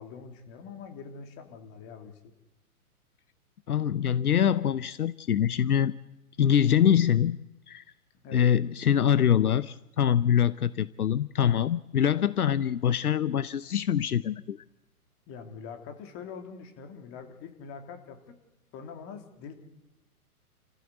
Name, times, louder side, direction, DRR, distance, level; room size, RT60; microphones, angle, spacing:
voice 1, 0.0-2.3 8.2-8.5 15.3-18.3 18.7-19.5, left 6 dB, 30° left, 5 dB, 3.1 m, -44 dB
voice 2, 3.7-5.9 6.4-7.4 7.7-7.8 8.3-14.6, left 9 dB, 75° left, 16 dB, 0.8 m, -24 dB
29.0 x 15.0 x 8.2 m, 1.0 s
figure-of-eight pair, 120°, 45 cm